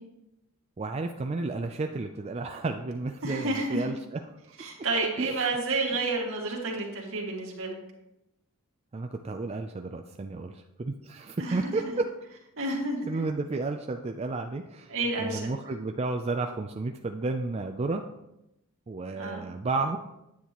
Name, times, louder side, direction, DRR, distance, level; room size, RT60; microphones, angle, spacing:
voice 1, 0.8-4.2 5.2-5.5 8.9-12.1 13.0-18.0 18.9-20.0, right 3 dB, 30° right, 5 dB, 0.4 m, -32 dB
voice 2, 3.2-3.9 4.6-7.8 11.4-11.9 12.6-13.2 14.9-15.5 19.2-19.4, right 2 dB, 65° right, -1 dB, 2.0 m, -30 dB
9.5 x 8.3 x 3.0 m, 0.89 s
head